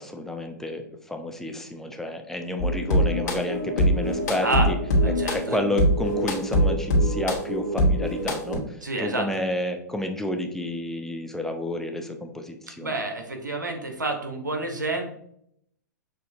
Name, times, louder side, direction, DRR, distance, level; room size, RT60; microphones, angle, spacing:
voice 1, 0.0-4.8 5.3-13.0, left 1 dB, 5° left, 4 dB, 0.4 m, -30 dB
sound 1, 2.6-8.6, equal, 70° left, 1.3 m, -23 dB
voice 2, 5.0-5.6 8.8-9.3 12.8-15.0, right 2 dB, 90° right, 4 dB, 0.9 m, -29 dB
6.3 x 2.6 x 2.6 m, 0.70 s
figure-of-eight pair, 105°, 10 cm